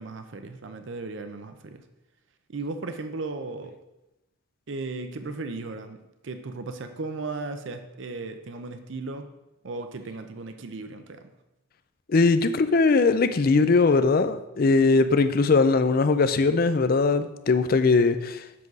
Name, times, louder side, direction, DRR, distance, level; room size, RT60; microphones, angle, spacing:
voice 1, 0.0-1.8 2.5-3.7 4.7-6.0 6.2-9.3 9.6-11.2, right 3 dB, 65° right, 8 dB, 0.6 m, -36 dB
voice 2, 12.1-18.4, left 4 dB, 45° left, 11 dB, 0.4 m, -20 dB
7.5 x 6.0 x 3.9 m, 0.96 s
head